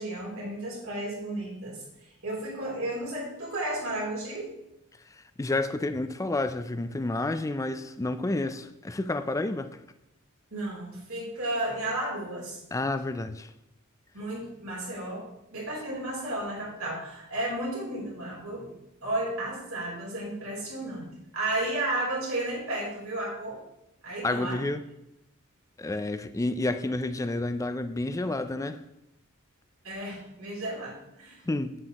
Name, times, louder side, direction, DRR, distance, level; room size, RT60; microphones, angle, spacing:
voice 1, 0.0-1.8 2.2-4.5 10.5-12.6 14.1-18.7 19.0-21.1 21.3-23.6 24.0-24.6 29.8-31.4, right 1 dB, 70° right, -4 dB, 3.3 m, -33 dB
voice 2, 5.1-9.7 12.7-13.5 24.2-24.8 25.8-28.8 31.5-31.8, left 2 dB, 15° left, 10 dB, 0.4 m, -30 dB
8.3 x 7.7 x 2.9 m, 0.85 s
head